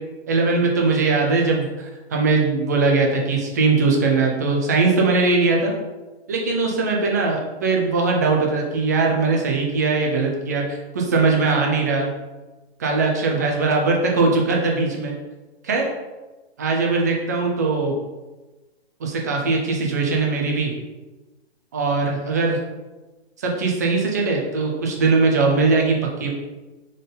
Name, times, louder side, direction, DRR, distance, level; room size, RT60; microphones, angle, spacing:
voice 1, 0.3-5.7 6.3-12.1 12.8-15.1 15.6-15.9 16.6-17.9 19.0-20.7 21.7-22.6 23.4-26.3, right 3 dB, 15° right, 0 dB, 0.3 m, -20 dB
3.7 x 3.7 x 3.8 m, 1.1 s
hypercardioid pair, 145°, 33 cm